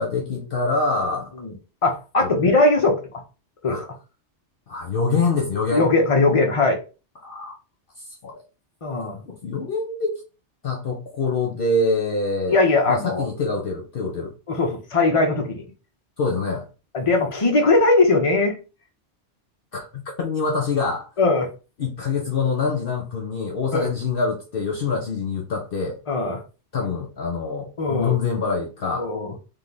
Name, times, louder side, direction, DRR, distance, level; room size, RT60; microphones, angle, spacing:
voice 1, 0.0-1.3 2.2-2.3 3.7-3.8 4.7-5.9 7.2-7.5 8.2-8.4 9.3-10.2 10.6-12.6 12.9-14.3 16.2-16.7 19.7-21.1 21.8-26.0 26.7-29.1, left 4 dB, 55° left, 0.9 m, -25 dB
voice 2, 1.8-3.2 3.6-3.8 5.7-6.8 8.8-9.2 12.5-13.2 14.5-15.6 16.9-18.6 21.2-21.5 23.7-23.9 26.1-26.4 27.8-28.1 29.0-29.3, left 3 dB, 30° left, 1.0 m, -20 dB
3.8 x 3.2 x 3.9 m
omnidirectional pair, 1.2 m